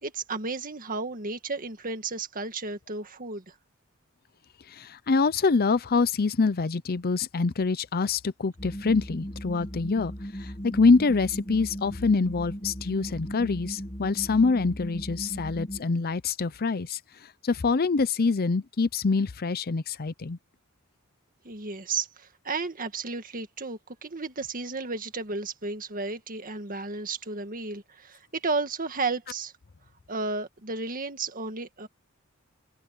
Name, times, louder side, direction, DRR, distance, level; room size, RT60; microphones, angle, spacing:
voice 1, 0.0-3.4 21.4-29.5 30.1-31.9, right 3 dB, 40° right, 1.9 m, -33 dB
voice 2, 4.7-10.1 10.4-17.0 17.4-20.4, left 4 dB, 45° left, 0.6 m, -25 dB
sound 1, 8.6-15.8, equal, 25° left, 1.9 m, -37 dB
head